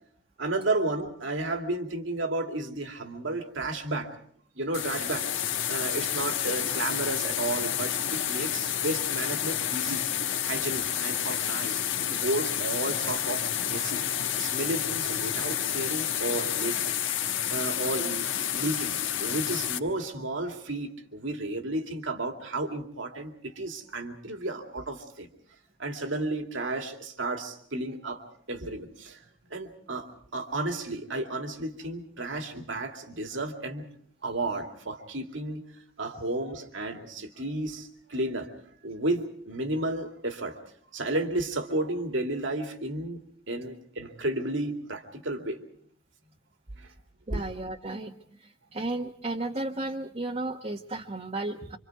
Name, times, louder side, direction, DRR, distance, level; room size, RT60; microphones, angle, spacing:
voice 1, 0.4-4.1 4.6-5.3 5.7-10.0 10.4-11.8 12.1-14.0 14.4-17.0 17.5-18.9 19.2-25.3 25.8-28.2 28.5-29.2 29.5-33.9 34.2-35.6 36.0-38.5 38.8-40.6 40.9-43.2 43.5-45.6 46.8-46.9 47.3-47.4, right 2 dB, 80° right, 5 dB, 2.5 m, -32 dB
sound 1, 4.7-19.8, left 10 dB, 85° left, 1.3 m, -30 dB
voice 2, 47.3-51.8, right 2 dB, 35° right, 1 dB, 1.1 m, -34 dB
26.5 x 26.5 x 4.6 m, 0.63 s
head